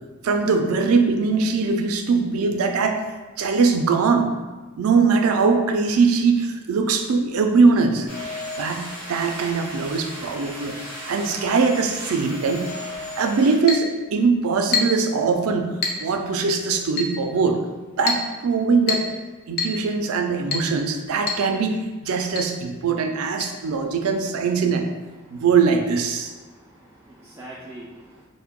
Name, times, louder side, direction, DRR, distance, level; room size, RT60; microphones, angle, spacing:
voice 1, 0.2-3.1 3.4-4.3 4.8-8.1 8.6-10.8 11.0-12.7 13.2-17.6 18.0-19.1 19.5-24.8 25.3-26.3, right 4 dB, 80° right, 5 dB, 0.4 m, -21 dB
sound 1, 8.1-13.6, left 1 dB, 5° left, 1.4 m, -36 dB
Chink clink, 13.7-13.9 14.7-15.1 15.8-16.1 17.0-17.2 18.1-18.3 18.9-19.2 19.6-19.8 20.5-20.7 21.3-21.5 21.7-21.8 22.4-22.5 23.4-23.5, left 4 dB, 50° left, 0.5 m, -25 dB
voice 2, 26.4-28.2, right 1 dB, 10° right, -5 dB, 0.3 m, -43 dB
3.7 x 2.1 x 3.5 m, 1.3 s
head